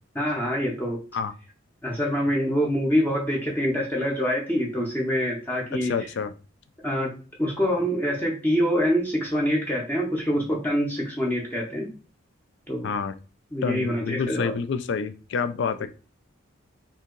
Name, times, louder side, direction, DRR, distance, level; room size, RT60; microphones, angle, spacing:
voice 1, 0.1-1.0 1.8-6.1 6.8-11.9 12.7-12.9 13.5-14.5, equal, 10° left, -2 dB, 0.6 m, -25 dB
voice 2, 5.8-6.3 12.8-13.1 13.6-15.9, left 5 dB, 60° left, 11 dB, 0.3 m, -28 dB
2.7 x 2.7 x 3.7 m, 0.35 s
head